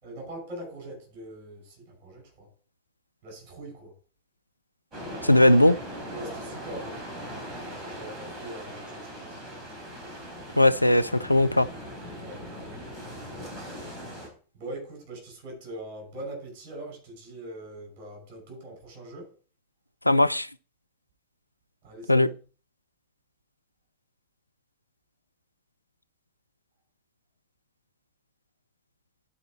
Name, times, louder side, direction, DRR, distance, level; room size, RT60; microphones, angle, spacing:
voice 1, 0.0-2.5 3.2-3.9 6.1-7.0 7.9-9.4 12.2-12.8 14.5-19.3 21.8-22.3, right 1 dB, 45° right, 5.6 m, -42 dB
sound 1, 4.9-14.3, equal, 20° right, 3.9 m, -40 dB
voice 2, 5.2-5.8 10.6-11.7 20.1-20.5 22.1-22.3, left 1 dB, 85° left, 0.3 m, -19 dB
11.0 x 4.9 x 4.4 m
figure-of-eight pair, 90°, 0 cm